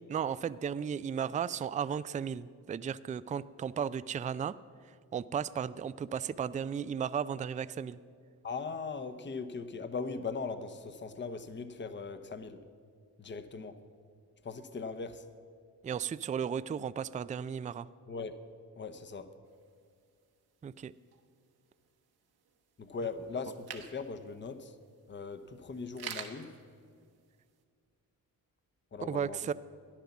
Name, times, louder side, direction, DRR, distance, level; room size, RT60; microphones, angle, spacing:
voice 1, 0.1-4.6 5.1-8.0 15.8-17.9 20.6-20.9 29.0-29.5, right 7 dB, 20° right, 16 dB, 0.3 m, -35 dB
voice 2, 8.4-12.6 13.2-13.8 14.4-15.3 18.1-18.4 18.8-19.4 22.8-24.8 25.1-26.6 28.9-29.5, left 4 dB, 30° left, 11 dB, 0.9 m, -39 dB
sound 1, 19.5-27.6, right 8 dB, 75° right, 1.4 m, -51 dB
13.5 x 10.5 x 7.1 m, 2.2 s
cardioid pair, 65°, 38 cm